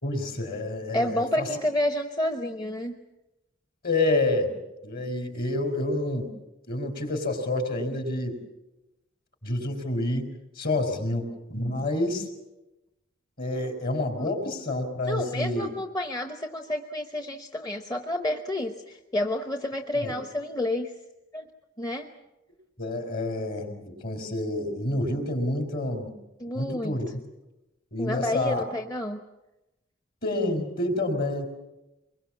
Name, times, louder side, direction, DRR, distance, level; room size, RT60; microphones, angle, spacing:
voice 1, 0.0-1.5 3.8-4.6 4.8-6.3 6.7-8.4 9.4-12.3 13.4-15.7 20.0-20.1 22.8-26.1 26.5-27.1 27.9-28.6 30.2-31.5, left 2 dB, 55° left, 5 dB, 4.3 m, -28 dB
voice 2, 0.9-3.0 14.2-14.3 15.0-20.9 21.3-21.5 21.8-22.1 26.4-27.0 28.0-29.2, left 1 dB, 20° left, 5 dB, 1.0 m, -30 dB
24.5 x 22.0 x 7.3 m, 1.0 s
head